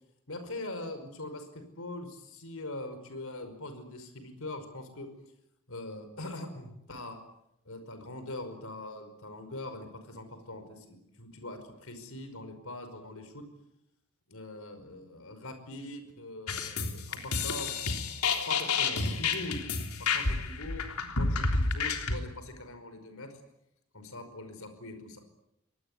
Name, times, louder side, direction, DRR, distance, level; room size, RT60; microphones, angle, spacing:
voice 1, 0.3-5.1 5.7-7.2 7.7-13.4 14.3-18.0 18.5-19.6 20.1-20.8 21.2-23.3 23.9-25.3, left 2 dB, 65° left, 8 dB, 5.3 m, -42 dB
sound 1, 16.5-22.2, left 4 dB, 85° left, 3.5 m, -30 dB
24.5 x 19.5 x 9.8 m, 0.82 s
head